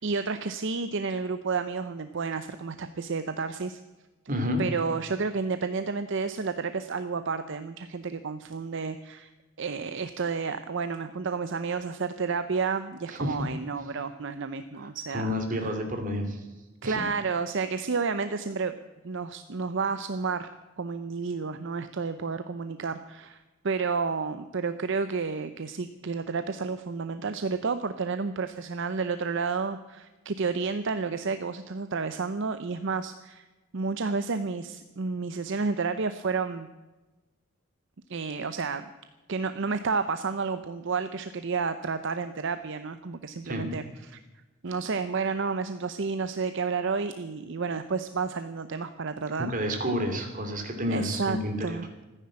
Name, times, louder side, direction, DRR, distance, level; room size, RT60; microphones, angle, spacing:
voice 1, 0.0-3.8 4.6-9.3 9.6-15.8 16.8-18.7 19.0-20.5 20.8-33.5 33.7-36.7 38.1-38.8 39.3-44.2 44.6-49.8 50.9-51.9, right 4 dB, 60° right, 10 dB, 0.7 m, -31 dB
voice 2, 4.3-4.6 13.1-13.4 15.1-16.4 16.8-17.0 43.4-43.7 49.4-51.8, equal, 40° right, 4 dB, 2.7 m, -30 dB
14.5 x 10.0 x 8.6 m, 1.1 s
head